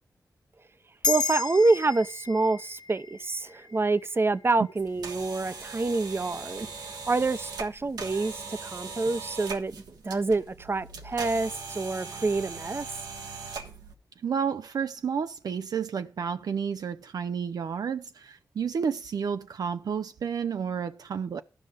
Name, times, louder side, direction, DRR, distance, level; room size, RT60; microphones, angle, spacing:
sound 1, 1.0-5.7, left 5 dB, 85° left, 1.0 m, -34 dB
voice 1, 1.1-9.8 10.0-12.9, right 3 dB, 35° right, 0.7 m, -27 dB
sound 2, 4.8-13.9, right 4 dB, 85° right, 1.2 m, -40 dB
voice 2, 14.2-21.4, right 6 dB, 70° right, 0.4 m, -31 dB
12.5 x 5.3 x 5.1 m
cardioid pair, 50°, 7 cm